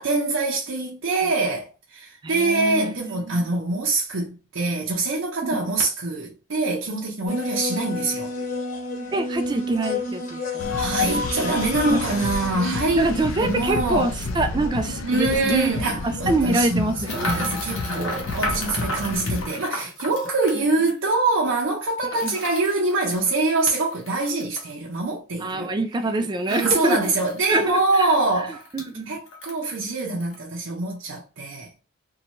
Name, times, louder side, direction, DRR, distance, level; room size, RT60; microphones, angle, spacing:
voice 1, 0.0-8.3 10.8-14.1 15.0-25.7 26.5-28.6 29.1-31.7, right 3 dB, 70° right, 0.6 m, -24 dB
voice 2, 2.2-3.4 5.4-5.6 9.1-10.7 11.9-12.0 13.0-15.7 16.0-17.5 20.5-20.6 22.2-22.4 25.4-27.0 27.5-28.1 28.7-29.2, right 2 dB, 20° right, 0.3 m, -25 dB
sound 1, 7.3-12.5, left 3 dB, 40° left, 0.9 m, -29 dB
sound 2, 10.6-19.5, left 2 dB, 70° left, 0.4 m, -31 dB
sound 3, 13.4-13.5 14.2-14.4 15.3-15.5 17.0-21.0 22.1-24.7 26.5-27.5 27.8-27.9 28.2-28.9 29.3-29.9 30.2-30.4, left 1 dB, 90° left, 1.1 m, -34 dB
2.7 x 2.2 x 2.8 m
head